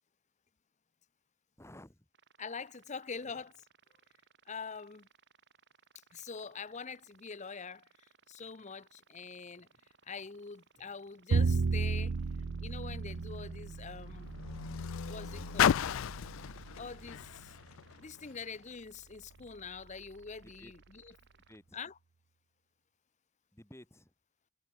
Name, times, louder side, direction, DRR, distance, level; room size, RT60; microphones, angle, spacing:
voice 1, 1.6-2.1 3.1-3.4 20.4-20.7 21.5-21.8 23.5-24.1, left 1 dB, 10° left, 2.0 m, -54 dB
sound 1, 2.1-21.6, right 5 dB, 55° right, 5.6 m, -66 dB
voice 2, 2.4-3.5 4.5-5.1 6.1-7.9 8.3-9.7 10.1-12.1 12.6-14.3 15.1-15.8 16.7-17.5 18.0-21.1 21.7-21.9, left 5 dB, 30° left, 0.7 m, -44 dB
Bowed string instrument, 11.3-17.5, right 4 dB, 85° right, 0.6 m, -35 dB
Car, 12.0-18.6 19.4-19.5, left 9 dB, 60° left, 0.3 m, -36 dB
head